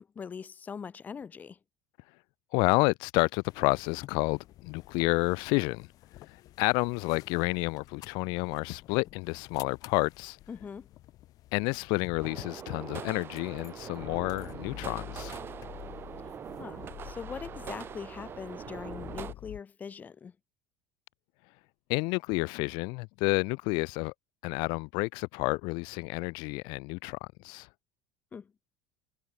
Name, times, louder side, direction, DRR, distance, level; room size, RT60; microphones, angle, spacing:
voice 1, 0.0-1.6 10.5-10.9 16.6-20.3 28.3-28.5, left 6 dB, 20° left, 1.1 m, -42 dB
voice 2, 2.5-5.9 6.3-10.4 11.5-15.4 21.9-24.1 24.4-27.7, left 29 dB, 65° left, 0.7 m, -30 dB
sound 1, 3.5-19.6, left 15 dB, 45° left, 4.5 m, -49 dB
sound 2, 12.2-19.3, right 8 dB, 25° right, 1.5 m, -43 dB
cardioid pair, 155°, 8 cm